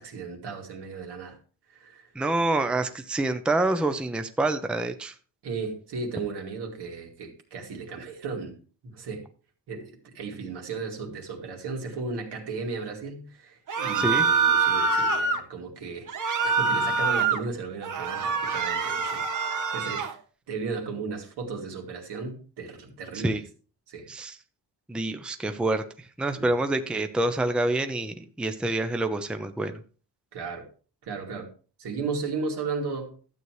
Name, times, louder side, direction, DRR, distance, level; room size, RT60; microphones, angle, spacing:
voice 1, 0.0-1.4 1.7-2.1 5.4-9.2 9.7-16.1 16.4-20.1 20.5-23.4 23.9-24.1 26.4-26.5 30.3-30.7 31.0-31.5 31.8-33.1, right 4 dB, 75° right, 2.6 m, -35 dB
voice 2, 2.2-5.1 13.9-14.3 23.1-23.4 24.1-24.4 24.9-25.8 26.2-29.7, right 2 dB, ahead, 0.6 m, -27 dB
sound 1, 13.7-15.4 16.1-17.4 17.8-20.1, right 5 dB, 50° right, 1.2 m, -25 dB
12.5 x 8.1 x 3.2 m
cardioid pair, 120°, 40 cm